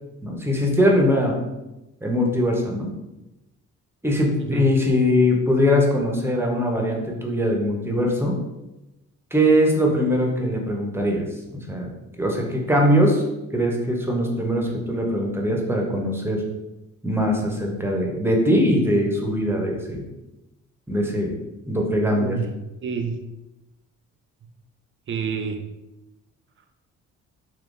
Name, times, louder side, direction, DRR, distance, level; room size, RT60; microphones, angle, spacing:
voice 1, 0.2-1.4 2.0-2.9 4.0-8.4 9.3-11.9 12.2-13.2 13.5-16.4 17.0-20.1 20.9-21.3 21.7-22.4, equal, 10° right, 0 dB, 0.7 m, -21 dB
voice 2, 21.9-22.5 22.8-23.2 25.1-25.6, right 5 dB, 40° right, 6 dB, 0.5 m, -29 dB
3.6 x 2.7 x 2.5 m, 0.98 s
cardioid pair, 90°, 30 cm